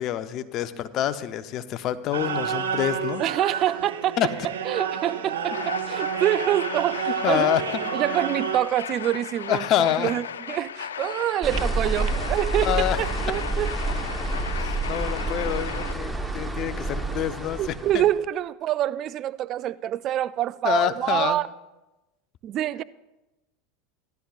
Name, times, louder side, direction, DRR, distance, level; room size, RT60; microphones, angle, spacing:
voice 1, 0.0-3.2 4.2-4.3 7.1-7.6 9.5-10.1 12.6-13.0 14.5-17.6 17.9-18.0 20.6-21.4, left 11 dB, 50° left, 0.7 m, -26 dB
sound 1, 2.1-8.6, right 7 dB, 85° right, 1.5 m, -30 dB
voice 2, 3.2-4.2 4.7-7.5 7.9-13.8 17.6-21.5 22.4-22.8, right 12 dB, 45° right, 0.3 m, -26 dB
sound 2, 5.5-15.9, left 8 dB, 85° left, 0.4 m, -36 dB
sound 3, 11.4-18.2, right 2 dB, 5° right, 1.0 m, -28 dB
16.0 x 12.0 x 2.4 m
hypercardioid pair, 85°, 0 cm